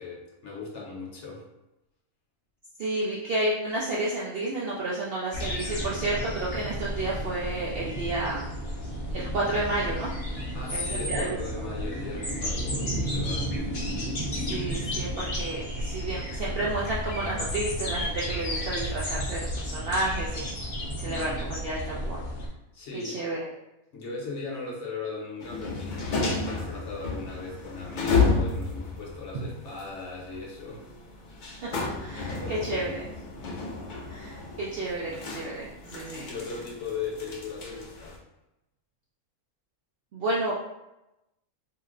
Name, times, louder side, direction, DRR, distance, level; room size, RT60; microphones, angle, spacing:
voice 1, 0.0-1.4 10.5-13.7 21.1-21.4 22.7-23.2 23.9-30.8 32.3-33.1 33.4-33.7 36.1-38.2, left 4 dB, 60° left, -2 dB, 1.0 m, -38 dB
voice 2, 2.8-8.5 9.1-10.1 10.7-11.7 14.5-20.5 20.9-22.2 23.0-23.5 29.3-29.4 31.6-31.7 32.0-33.0 34.1-36.3 40.1-40.5, right 2 dB, 65° right, -5 dB, 0.6 m, -31 dB
sound 1, 5.3-22.5, equal, 45° left, 0.7 m, -32 dB
sound 2, 25.4-38.2, left 4 dB, 85° left, 0.4 m, -32 dB
2.8 x 2.1 x 3.6 m, 0.93 s
omnidirectional pair, 1.5 m